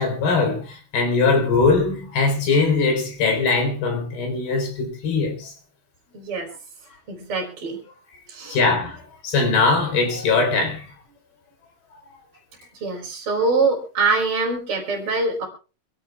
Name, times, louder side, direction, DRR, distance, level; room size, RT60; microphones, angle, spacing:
voice 1, 0.0-5.5 8.5-10.9, left 4 dB, 75° left, 5.9 m, -21 dB
voice 2, 6.1-6.5 7.1-7.8 8.3-8.6 12.7-15.5, right 3 dB, 35° right, 4.9 m, -24 dB
26.0 x 17.0 x 2.4 m
omnidirectional pair, 4.4 m